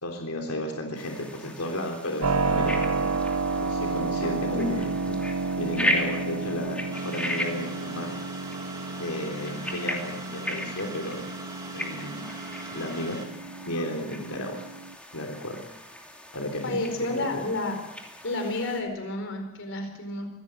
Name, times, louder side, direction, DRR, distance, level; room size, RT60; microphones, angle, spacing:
voice 1, 0.0-3.1 3.6-4.9 5.6-8.1 9.0-11.3 11.7-12.3 12.7-13.2 13.6-14.7 15.1-15.6 16.3-16.9 17.1-17.4, left 1 dB, 90° left, 2 dB, 3.5 m, -33 dB
sound 1, 0.9-18.8, left 1 dB, 5° left, 2.8 m, -37 dB
Keyboard (musical), 2.2-14.9, right 3 dB, 90° right, 1.1 m, -31 dB
voice 2, 4.2-4.7 13.7-13.8 16.6-17.8 18.2-20.3, left 2 dB, 60° left, 5 dB, 4.6 m, -30 dB
sound 2, 6.9-13.2, right 3 dB, 15° right, 3.1 m, -42 dB
24.5 x 16.0 x 7.8 m, 0.90 s
head